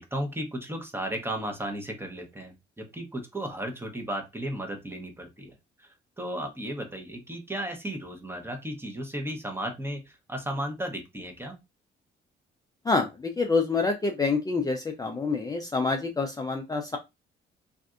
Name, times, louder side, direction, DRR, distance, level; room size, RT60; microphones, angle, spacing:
voice 1, 0.0-11.6, right 1 dB, 10° right, 3 dB, 0.9 m, -35 dB
voice 2, 12.8-17.0, left 4 dB, 20° left, 3 dB, 0.5 m, -27 dB
3.4 x 2.5 x 2.4 m, 0.23 s
cardioid pair, 90°, 20 cm